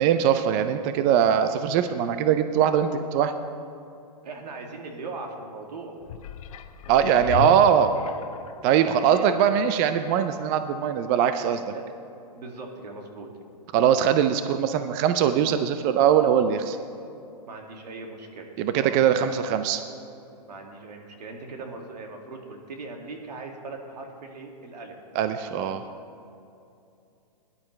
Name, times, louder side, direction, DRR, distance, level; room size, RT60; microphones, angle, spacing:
voice 1, 0.0-3.3 6.9-7.9 8.6-11.7 13.7-16.8 18.6-19.8 25.1-25.8, right 9 dB, 25° right, 10 dB, 0.4 m, -21 dB
voice 2, 4.2-5.9 7.2-7.5 9.0-9.3 11.7-11.9 12.3-13.3 17.5-18.5 18.8-19.2 20.5-25.0, right 3 dB, 80° right, 1 dB, 2.2 m, -39 dB
sound 1, 6.0-8.6 9.3-9.4, left 9 dB, 55° left, 0.7 m, -34 dB
17.5 x 11.0 x 3.2 m, 2.7 s
hypercardioid pair, 145°, 21 cm